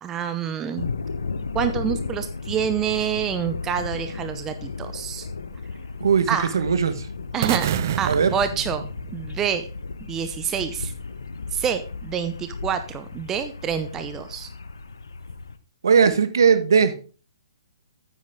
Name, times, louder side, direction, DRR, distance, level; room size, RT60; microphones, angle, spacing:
voice 1, 0.0-0.9 1.5-5.3 6.3-6.5 7.3-7.7 8.0-8.9 9.1-9.7 10.1-10.9 11.5-14.5, right 8 dB, 15° right, 9 dB, 0.8 m, -27 dB
sound 1, 0.8-15.6, left 4 dB, 80° left, 0.9 m, -34 dB
voice 2, 6.5-7.1 8.0-8.3 15.8-17.0, right 6 dB, 70° right, 11 dB, 1.4 m, -18 dB
sound 2, 7.4-9.5, right 11 dB, 50° right, 0.4 m, -28 dB
9.3 x 8.5 x 3.7 m, 0.36 s
hypercardioid pair, 135°, 2 cm